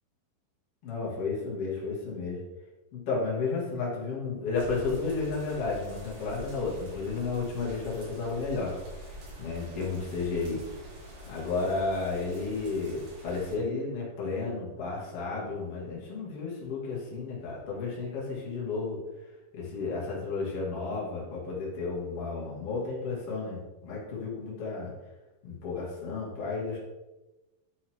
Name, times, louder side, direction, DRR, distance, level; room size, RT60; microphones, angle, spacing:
voice 1, 0.8-2.4 2.9-9.1 9.4-10.6 11.2-19.0 19.5-24.9 25.4-26.8, left 4 dB, 40° left, -5 dB, 2.6 m, -32 dB
sound 1, 4.5-13.5, equal, 70° right, 5.3 m, -45 dB
10.5 x 6.4 x 3.7 m, 1.1 s
omnidirectional pair, 5.5 m